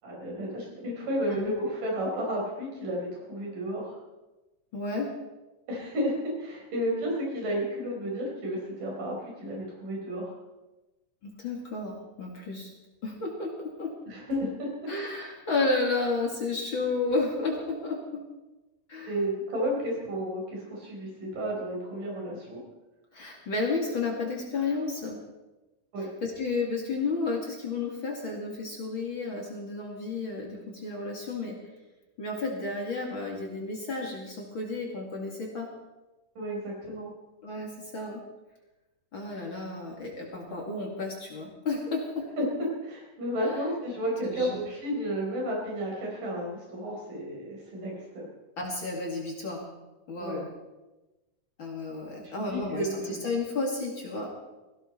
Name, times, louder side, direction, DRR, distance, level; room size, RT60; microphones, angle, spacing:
voice 1, 0.0-4.0 5.7-10.3 14.1-14.9 19.1-22.6 25.9-26.1 36.4-37.1 42.4-42.5 42.9-48.3 50.2-50.4 52.4-53.1, equal, 75° right, -2 dB, 6.2 m, -32 dB
voice 2, 4.7-5.1 11.2-12.7 13.0-13.9 14.9-18.2 18.9-19.1 23.1-25.2 26.2-31.6 32.2-35.7 37.4-38.2 39.1-42.2 43.4-43.6 44.2-44.6 48.6-49.7 50.1-50.5 51.6-54.3, left 3 dB, 40° left, -1 dB, 2.6 m, -32 dB
18.0 x 16.0 x 4.4 m, 1.1 s
omnidirectional pair, 3.9 m